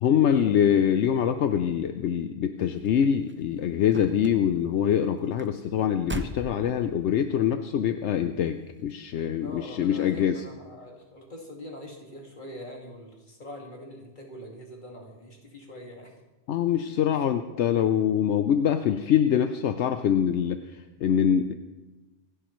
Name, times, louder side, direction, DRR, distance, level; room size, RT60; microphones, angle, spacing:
voice 1, 0.0-10.4 16.5-21.5, left 9 dB, 80° left, 8 dB, 0.9 m, -24 dB
sound 1, 2.6-7.4 8.1-8.5 8.8-8.9, right 1 dB, 15° right, 0.5 m, -40 dB
voice 2, 9.4-16.1 17.1-17.3, left 1 dB, 45° left, 0 dB, 2.2 m, -43 dB
26.5 x 11.5 x 3.1 m, 1.1 s
omnidirectional pair, 1.2 m